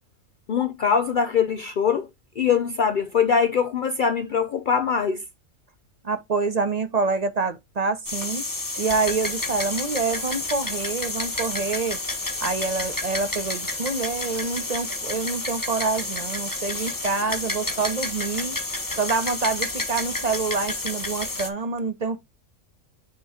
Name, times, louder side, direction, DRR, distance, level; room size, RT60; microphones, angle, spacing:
voice 1, 0.5-2.1 2.4-5.2, left 6 dB, 65° left, 0.5 m, -22 dB
voice 2, 6.0-8.5 8.8-12.0 12.4-18.6 19.0-22.2, right 4 dB, 40° right, 0.6 m, -27 dB
sound 1, 8.1-21.5, left 2 dB, 15° left, 1.0 m, -30 dB
6.8 x 3.0 x 4.8 m
omnidirectional pair, 1.4 m